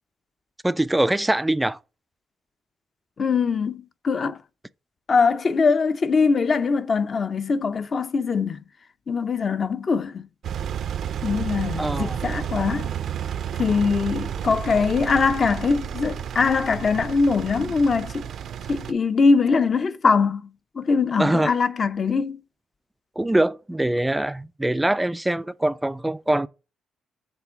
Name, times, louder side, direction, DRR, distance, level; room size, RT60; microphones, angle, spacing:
voice 1, 0.6-1.8 11.8-12.2 21.2-21.5 23.2-26.5, right 1 dB, 10° right, 0.4 m, -23 dB
voice 2, 3.2-4.4 5.1-8.6 9.1-10.3 11.2-12.9 13.6-18.3 18.7-20.5 20.8-22.4, left 4 dB, 40° left, 0.7 m, -22 dB
Engine, 10.4-18.9, right 9 dB, 65° right, 0.5 m, -31 dB
7.1 x 3.7 x 5.5 m
cardioid pair, 90°, 0 cm